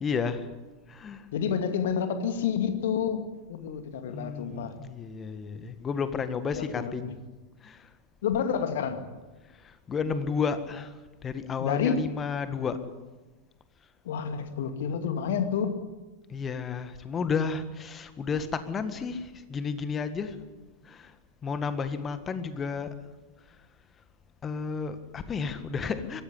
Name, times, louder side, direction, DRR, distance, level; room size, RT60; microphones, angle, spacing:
voice 1, 0.0-0.5 0.9-1.2 4.1-7.2 7.6-7.9 9.6-10.9 11.2-12.8 16.3-20.4 20.8-21.1 21.4-22.9 24.4-26.2, left 5 dB, 20° left, 11 dB, 1.8 m, -32 dB
voice 2, 1.3-3.2 3.5-4.8 6.5-7.1 8.2-9.0 11.6-12.0 14.0-15.8, left 7 dB, 55° left, 8 dB, 2.3 m, -29 dB
22.5 x 15.5 x 9.9 m, 1.2 s
figure-of-eight pair, 90°, 0 cm